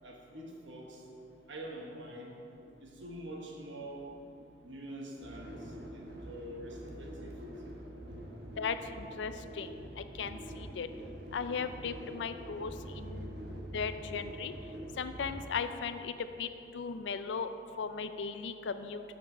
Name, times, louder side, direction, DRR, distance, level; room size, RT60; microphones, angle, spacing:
voice 1, 0.0-1.0 1.5-2.4 2.8-4.1 4.6-7.3, right 1 dB, 85° right, -1 dB, 1.2 m, -45 dB
sound 1, 5.2-15.4, right 1 dB, 65° right, 1.0 m, -45 dB
voice 2, 8.6-10.9 11.3-13.3 13.7-14.5 15.0-16.5 16.7-17.5 17.8-19.0, left 5 dB, 75° left, 10 dB, 0.4 m, -37 dB
7.4 x 6.0 x 5.4 m, 2.8 s
head